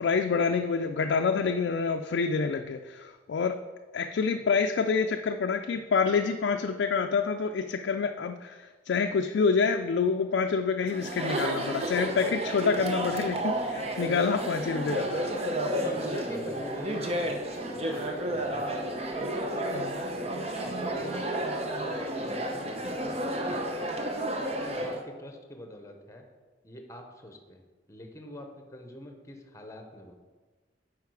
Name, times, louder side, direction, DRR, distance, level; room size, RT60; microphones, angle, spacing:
voice 1, 0.0-3.6 3.9-15.3 19.7-20.0, left 5 dB, 85° left, 5 dB, 0.4 m, -27 dB
Chatter, 10.9-25.0, right 1 dB, 35° right, 0.8 m, -31 dB
voice 2, 15.7-18.9 19.6-19.9 20.5-21.4 21.7-23.3 24.7-26.2 26.6-30.1, equal, 20° left, 4 dB, 0.9 m, -44 dB
8.3 x 4.9 x 4.8 m, 1.4 s
head